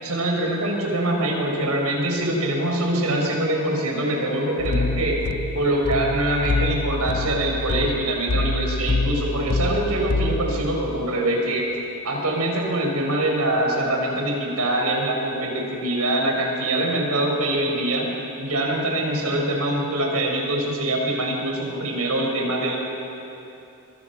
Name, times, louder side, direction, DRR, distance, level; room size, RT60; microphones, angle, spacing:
voice 1, 0.0-5.2 5.5-11.6 12.0-18.1 18.4-22.8, right 1 dB, 90° right, 0 dB, 5.4 m, -24 dB
sound 1, 4.6-10.7, left 2 dB, 80° left, 0.7 m, -26 dB
26.0 x 23.5 x 6.0 m, 2.8 s
head